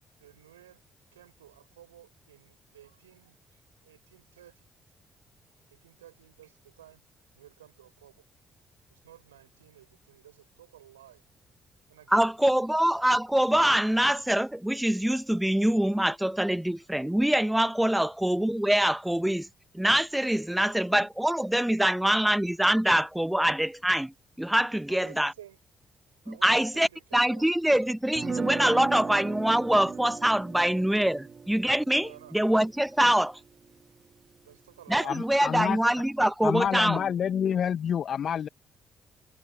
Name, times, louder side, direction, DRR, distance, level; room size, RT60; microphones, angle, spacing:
voice 1, 0.2-0.8 1.1-4.7 5.7-7.0 7.3-8.2 8.9-11.2 11.9-12.3 17.9-18.1 20.5-20.8 24.9-25.6 26.2-27.5 31.9-32.4 32.8-33.2 34.4-35.8, right 12 dB, 85° right, 4.4 m, -53 dB
voice 2, 12.1-19.5 19.7-24.1 24.4-25.3 26.3-33.3 34.9-37.0, right 1 dB, 5° right, 0.7 m, -24 dB
sound 1, 28.1-34.1, right 5 dB, 40° right, 1.4 m, -38 dB
voice 3, 35.0-35.8 36.4-38.5, left 8 dB, 55° left, 0.7 m, -28 dB
open air
hypercardioid pair, 45°, 0 cm